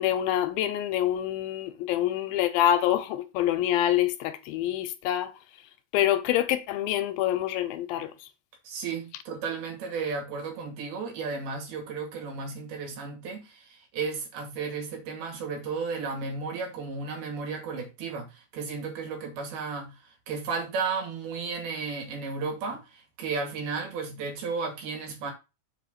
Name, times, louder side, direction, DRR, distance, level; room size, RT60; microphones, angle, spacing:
voice 1, 0.0-5.3 5.9-8.1, left 12 dB, 85° left, 2.6 m, -26 dB
voice 2, 8.6-25.3, right 4 dB, 85° right, 4.4 m, -34 dB
7.4 x 4.0 x 6.7 m
omnidirectional pair, 4.3 m